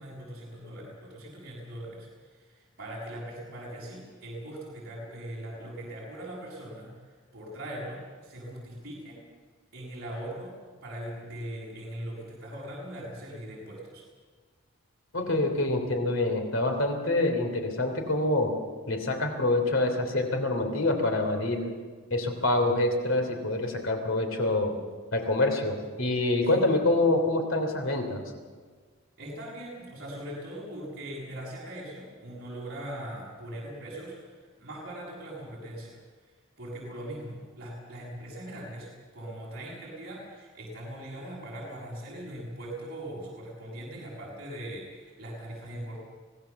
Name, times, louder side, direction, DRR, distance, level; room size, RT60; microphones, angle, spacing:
voice 1, 0.0-7.0 7.3-9.2 9.7-10.5 10.8-14.0 26.4-26.6 29.2-36.0 36.6-46.0, right 1 dB, 50° right, -5 dB, 7.3 m, -40 dB
voice 2, 15.1-18.5 18.9-21.7 22.1-24.7 25.1-28.2, left 2 dB, 65° left, 4 dB, 3.2 m, -26 dB
25.5 x 17.5 x 7.1 m, 1.5 s
head